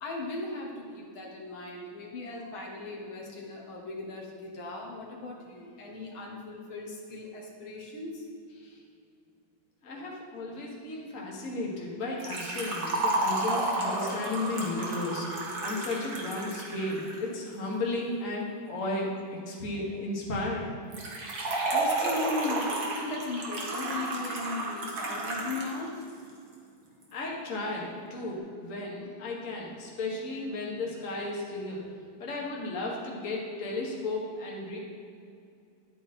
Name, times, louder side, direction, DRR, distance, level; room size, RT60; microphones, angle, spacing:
voice 1, 0.0-8.2 9.9-10.0 21.3-26.0, left 2 dB, 80° left, -2 dB, 2.4 m, -38 dB
voice 2, 9.8-15.3 15.6-19.1 19.5-20.8 27.1-31.9 32.2-34.8, left 2 dB, 40° left, -2 dB, 1.9 m, -34 dB
Liquid, 12.2-17.2 20.9-25.7 26.0-26.1 27.0-27.1, right 2 dB, 50° right, 2.0 m, -31 dB
11.5 x 8.9 x 4.4 m, 2.4 s
omnidirectional pair, 2.2 m